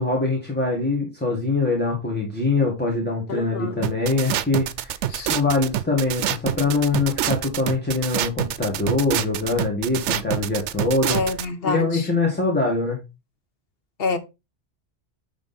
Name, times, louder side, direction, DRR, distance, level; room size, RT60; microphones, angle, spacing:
voice 1, 0.0-11.2 11.6-13.0, left 3 dB, 10° left, 1.8 m, -23 dB
voice 2, 3.3-3.8 5.1-5.3 11.1-12.1 14.0-14.2, left 4 dB, 55° left, 1.1 m, -27 dB
sound 1, 3.8-11.5, right 11 dB, 80° right, 0.9 m, -26 dB
9.7 x 3.6 x 4.1 m
omnidirectional pair, 1.2 m